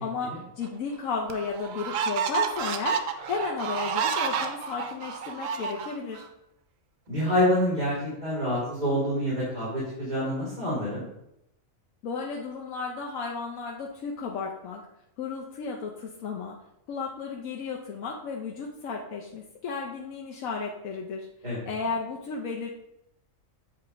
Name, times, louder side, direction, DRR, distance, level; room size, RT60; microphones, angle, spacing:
voice 1, 0.0-3.0 3.3-6.2 12.0-14.9 15.2-16.6 16.9-21.3 21.7-22.7, left 4 dB, 85° left, -1 dB, 1.2 m, -33 dB
sound 1, 0.6-0.7 1.3-6.3, right 6 dB, 80° right, 1.0 m, -30 dB
voice 2, 7.1-7.9 8.2-11.1 21.4-21.6, equal, 30° right, -9 dB, 2.3 m, -26 dB
7.7 x 2.8 x 4.9 m, 0.80 s
omnidirectional pair, 1.4 m